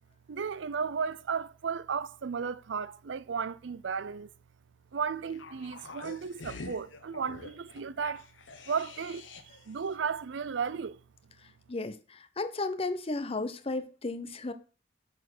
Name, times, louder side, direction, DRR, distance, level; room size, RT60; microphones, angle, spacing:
voice 1, 0.3-4.3 4.9-8.3 8.7-11.0, right 6 dB, 75° right, 0.5 m, -34 dB
sound 1, 5.3-9.7 9.9-10.0, left 3 dB, 80° left, 1.0 m, -46 dB
voice 2, 11.7-14.5, left 3 dB, 30° left, 0.7 m, -34 dB
9.0 x 4.4 x 6.6 m
head